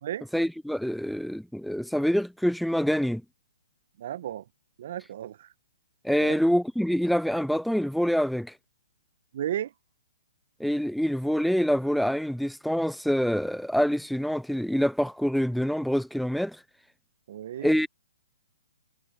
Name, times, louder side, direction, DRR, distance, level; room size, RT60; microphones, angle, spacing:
voice 1, 0.3-3.2 6.0-8.5 10.6-16.6 17.6-17.9, equal, ahead, 0.5 m, -26 dB
voice 2, 4.0-4.4 4.8-5.5 6.2-6.4 9.3-9.7 17.3-17.7, right 11 dB, 55° right, 1.1 m, -33 dB
hypercardioid pair, 130°, 0 cm